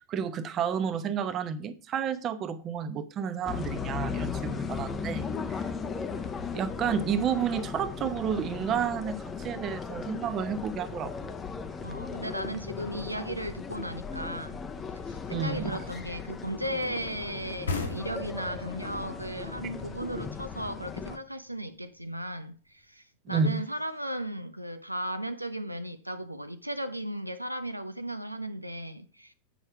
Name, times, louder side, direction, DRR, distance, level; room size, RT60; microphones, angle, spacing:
voice 1, 0.0-5.7 6.5-11.4 15.3-15.8 23.3-23.6, right 7 dB, 30° right, 0.8 m, -31 dB
sound 1, 3.4-21.2, left 5 dB, 20° left, 0.7 m, -37 dB
voice 2, 11.8-14.6 15.1-29.3, right 1 dB, 90° right, 0.5 m, -36 dB
sound 2, 17.7-21.1, left 4 dB, 70° left, 1.5 m, -37 dB
8.5 x 5.6 x 4.7 m
figure-of-eight pair, 90°, 0 cm